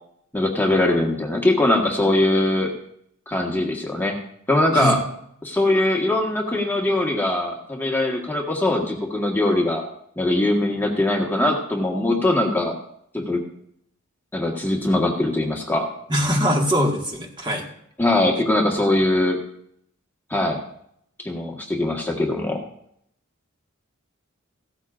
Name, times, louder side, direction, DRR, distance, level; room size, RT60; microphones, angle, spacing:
voice 1, 0.3-2.7 3.3-4.1 4.5-5.0 5.4-9.8 10.2-12.7 13.1-13.4 14.3-15.8 18.0-19.4 20.3-20.6 21.2-22.6, left 1 dB, 10° left, -1 dB, 1.5 m, -21 dB
voice 2, 16.1-17.7, equal, 20° right, 0 dB, 1.8 m, -22 dB
16.0 x 13.5 x 2.5 m, 0.71 s
head